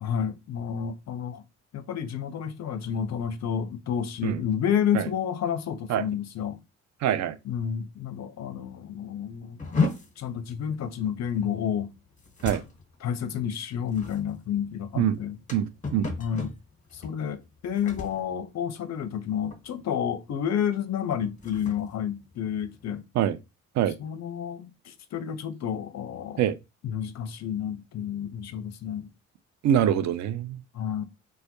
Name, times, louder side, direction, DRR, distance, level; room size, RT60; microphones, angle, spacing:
voice 1, 0.0-1.4 1.7-6.6 7.4-9.6 10.2-11.9 13.0-15.4 16.2-16.5 16.9-23.0 24.0-26.4 26.8-29.1 30.7-31.0, left 8 dB, 45° left, 0.5 m, -30 dB
voice 2, 7.0-7.4 12.4-12.6 15.0-15.2 15.5-16.1 23.2-23.4 23.8-24.0 26.4-26.6 29.6-30.6, right 10 dB, 45° right, 0.4 m, -24 dB
sound 1, 9.6-19.2 19.5-19.9 20.3-20.5 21.1-23.0, left 4 dB, 20° left, 1.0 m, -35 dB
2.2 x 2.0 x 2.9 m
hypercardioid pair, 50°, 38 cm